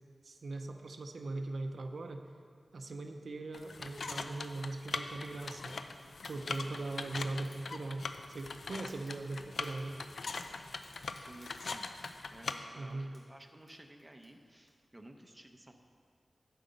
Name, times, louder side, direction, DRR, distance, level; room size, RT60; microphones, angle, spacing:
voice 1, 0.2-2.2 2.7-5.8 6.3-10.0 12.8-13.1, right 2 dB, 75° right, 5 dB, 0.6 m, -40 dB
sound 1, 3.5-12.5, left 4 dB, 80° left, 0.5 m, -42 dB
Fire, 5.7-14.7, left 1 dB, 55° left, 2.7 m, -62 dB
voice 2, 6.3-6.8 11.3-15.7, right 1 dB, 15° right, 4 dB, 0.7 m, -55 dB
10.5 x 7.7 x 5.1 m, 2.1 s
wide cardioid pair, 100°, 0 cm